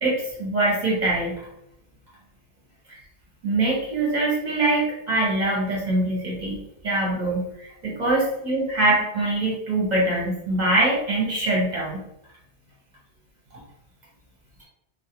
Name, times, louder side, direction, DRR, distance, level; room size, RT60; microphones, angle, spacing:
voice 1, 0.0-1.3 2.9-3.0 3.4-12.0, right 2 dB, 45° right, -4 dB, 0.8 m, -23 dB
2.3 x 2.1 x 2.8 m, 0.81 s
omnidirectional pair, 1.1 m